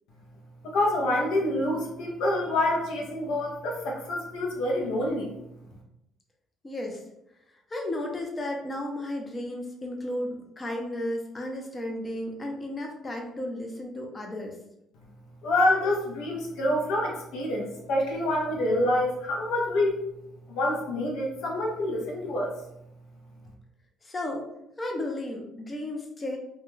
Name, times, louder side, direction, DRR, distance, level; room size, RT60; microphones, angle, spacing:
voice 1, 0.6-5.3 15.4-20.0 20.5-22.5, left 1 dB, 75° left, -1 dB, 0.6 m, -27 dB
voice 2, 6.6-7.0 7.7-14.6 24.0-26.4, left 1 dB, 30° left, 1 dB, 0.5 m, -34 dB
2.2 x 2.2 x 3.0 m, 0.82 s
supercardioid pair, 75°, 0 cm